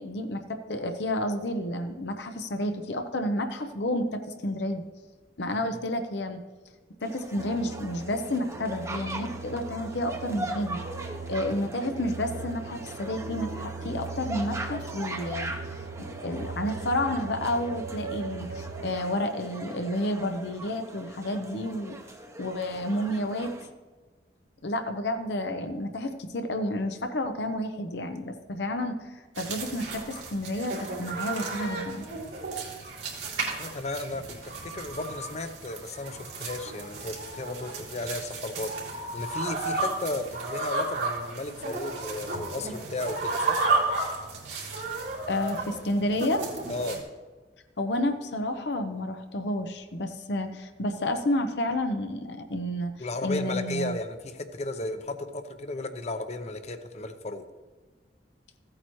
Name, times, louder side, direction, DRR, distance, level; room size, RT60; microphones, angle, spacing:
voice 1, 0.0-4.8 5.4-6.4 7.0-10.8 11.3-15.5 16.1-22.0 22.4-23.5 24.6-32.1 45.3-46.4 47.8-54.0, left 1 dB, 75° left, 7 dB, 0.8 m, -30 dB
sound 1, 7.0-23.7, right 1 dB, 15° right, 0.8 m, -40 dB
sound 2, 7.4-18.9, right 4 dB, 60° right, 0.4 m, -39 dB
sound 3, 29.3-47.0, right 3 dB, 80° right, 2.6 m, -33 dB
voice 2, 33.6-34.3 34.6-43.6 46.7-47.0 53.0-57.4, left 2 dB, 40° left, 9 dB, 0.7 m, -34 dB
15.0 x 8.7 x 3.1 m, 1.4 s
head